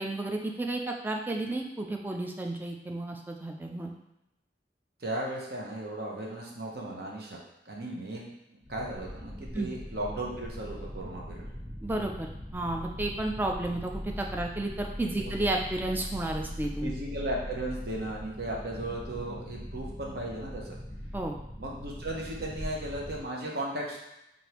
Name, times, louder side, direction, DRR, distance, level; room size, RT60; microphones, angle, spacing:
voice 1, 0.0-3.9 9.5-9.7 11.8-16.9 21.1-21.4, right 2 dB, 10° right, 2 dB, 0.4 m, -32 dB
voice 2, 5.0-7.4 7.7-11.5 15.1-15.3 16.8-20.8 21.6-24.0, right 1 dB, 60° right, -3 dB, 0.9 m, -36 dB
sound 1, 8.6-23.2, equal, 75° right, 1.3 m, -41 dB
5.0 x 2.6 x 2.9 m, 0.88 s
head